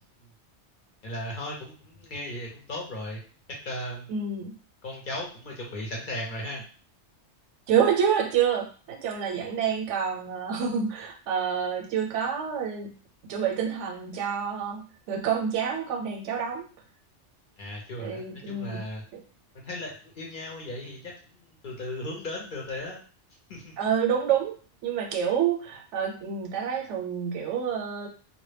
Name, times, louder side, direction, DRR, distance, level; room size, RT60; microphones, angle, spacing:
voice 1, 1.0-3.2 3.7-4.1 4.8-6.6 17.6-19.0 19.5-23.0 23.5-23.8, left 1 dB, 55° left, -1 dB, 0.7 m, -36 dB
voice 2, 4.1-4.5 7.7-12.9 13.3-16.7 18.0-18.8 19.1-19.2 23.8-24.5 24.8-28.1, right 7 dB, 85° right, 2 dB, 0.9 m, -28 dB
2.1 x 2.1 x 3.2 m, 0.40 s
omnidirectional pair, 1.2 m